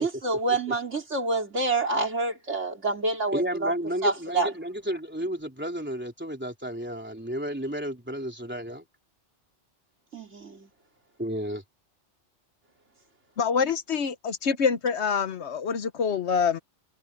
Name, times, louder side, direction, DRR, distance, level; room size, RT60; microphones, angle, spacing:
voice 1, 0.0-3.7 4.0-4.5 10.1-10.7, right 3 dB, 75° right, 3.8 m, -27 dB
voice 2, 3.3-8.9 11.2-11.6, equal, 10° right, 3.5 m, -32 dB
voice 3, 13.4-16.6, left 6 dB, 70° left, 1.2 m, -26 dB
omnidirectional pair, 1.2 m